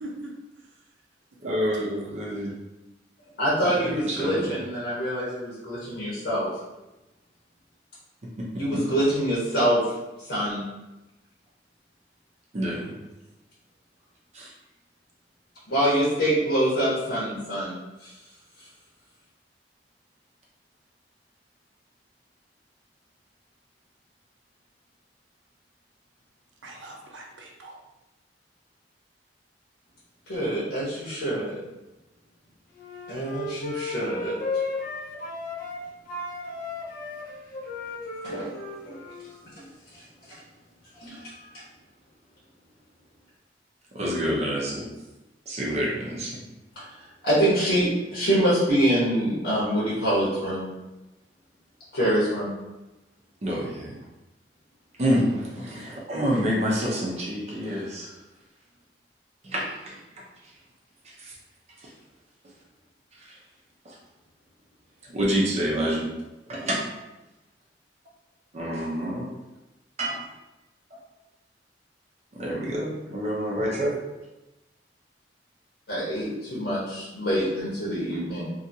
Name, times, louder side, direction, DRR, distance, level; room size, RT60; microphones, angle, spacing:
voice 1, 0.0-0.3 1.4-2.1 26.6-27.8, right 2 dB, 80° right, -1 dB, 0.6 m, -39 dB
voice 2, 1.4-2.5 3.7-4.5 8.7-8.8 12.5-12.9 14.3-14.5 43.9-44.9 45.5-46.3 53.4-54.0 55.0-58.1 59.4-60.0 61.0-61.3 61.8-61.9 63.2-63.4 63.8-64.0 65.1-66.1 66.5-66.8 68.5-69.3 70.0-70.2 72.3-74.0 78.1-78.2, equal, 40° right, -4 dB, 0.5 m, -28 dB
voice 3, 3.4-6.5 8.6-9.8 10.3-10.6 15.7-18.1 30.3-31.5 33.1-34.4 38.2-39.0 39.9-40.0 41.0-41.3 46.8-50.7 51.9-52.5 75.9-78.5, equal, 70° left, -8 dB, 1.0 m, -25 dB
Wind instrument woodwind instrument, 32.8-35.8 36.1-39.4, left 3 dB, 50° left, 0.5 m, -34 dB
2.7 x 2.7 x 2.6 m, 1.0 s
head